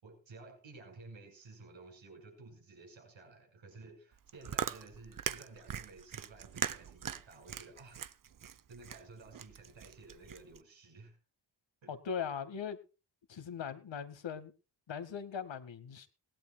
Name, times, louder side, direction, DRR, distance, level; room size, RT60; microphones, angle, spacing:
voice 1, 0.0-8.0 8.7-11.2 11.8-11.9, right 3 dB, 70° right, 6.0 m, -54 dB
Chewing mastication, 4.1-10.6, right 8 dB, 40° right, 0.8 m, -41 dB
voice 2, 11.9-12.8 13.3-14.5 14.9-16.1, left 7 dB, 65° left, 2.1 m, -40 dB
17.5 x 17.5 x 2.4 m
supercardioid pair, 45°, 48 cm